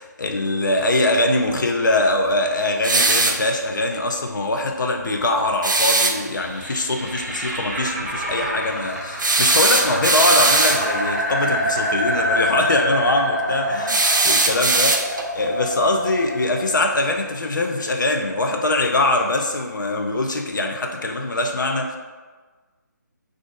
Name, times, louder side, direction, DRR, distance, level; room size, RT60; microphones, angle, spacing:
voice 1, 0.0-22.0, left 2 dB, 75° left, 3 dB, 0.5 m, -22 dB
sound 1, 2.8-3.5 5.6-6.2 9.2-10.9 13.9-15.3, right 3 dB, 80° right, 0.4 m, -19 dB
sound 2, 6.2-18.0, equal, 10° right, 0.8 m, -26 dB
2.5 x 2.4 x 3.7 m, 1.4 s
figure-of-eight pair, 155°, 10 cm